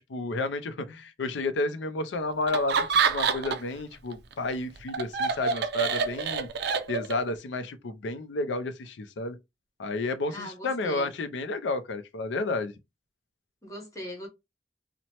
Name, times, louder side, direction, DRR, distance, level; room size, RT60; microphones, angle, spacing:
voice 1, 0.0-6.5 6.9-9.4 9.8-12.7, left 2 dB, 80° left, 0.5 m, -31 dB
Laughter, 2.5-3.8 4.1-7.3, right 5 dB, 65° right, 0.4 m, -27 dB
voice 2, 10.3-11.1 13.6-14.3, left 1 dB, 20° left, 0.9 m, -40 dB
2.9 x 2.1 x 2.8 m
head